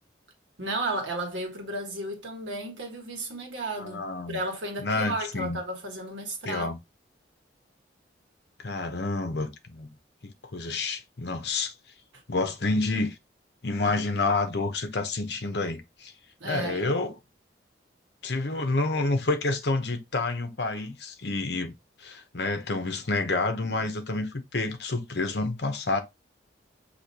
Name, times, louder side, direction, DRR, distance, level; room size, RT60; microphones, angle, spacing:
voice 1, 0.6-6.7 16.4-17.0, right 2 dB, 80° right, 1.5 m, -33 dB
voice 2, 3.8-4.4 4.8-5.6 6.4-6.8 8.6-9.9 10.2-11.7 12.3-13.2 13.6-16.1 16.4-17.1 18.2-21.7 22.0-26.0, left 3 dB, 60° left, 0.9 m, -29 dB
6.3 x 2.8 x 2.8 m
head